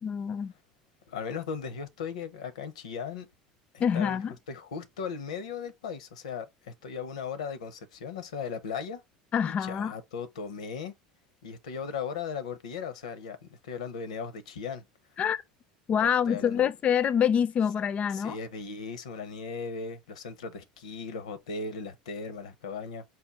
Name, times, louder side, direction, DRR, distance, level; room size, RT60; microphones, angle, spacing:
voice 1, 0.0-0.5 3.8-4.3 9.3-9.9 15.2-15.4 15.9-18.4, left 8 dB, 40° left, 0.3 m, -26 dB
voice 2, 1.1-3.3 3.7-4.2 4.5-9.0 9.6-10.9 11.4-14.8 16.0-16.7 18.1-23.0, left 5 dB, 90° left, 0.6 m, -37 dB
4.2 x 2.3 x 3.4 m
hypercardioid pair, 80°, 3 cm